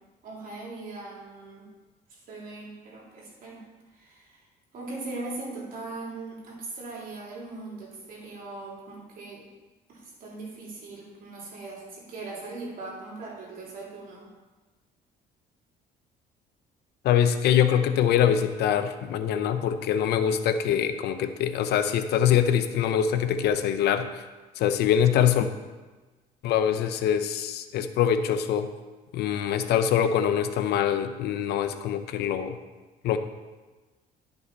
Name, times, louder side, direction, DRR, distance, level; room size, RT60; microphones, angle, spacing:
voice 1, 0.2-1.7 2.1-3.6 3.9-4.4 4.7-9.5 9.9-14.3, right 3 dB, 55° right, -3 dB, 3.0 m, -40 dB
voice 2, 17.0-24.1 24.6-25.5 26.4-28.7 29.1-32.6 33.0-33.2, left 9 dB, 75° left, 9 dB, 0.7 m, -24 dB
11.0 x 5.6 x 4.0 m, 1.2 s
cardioid pair, 110°, 17 cm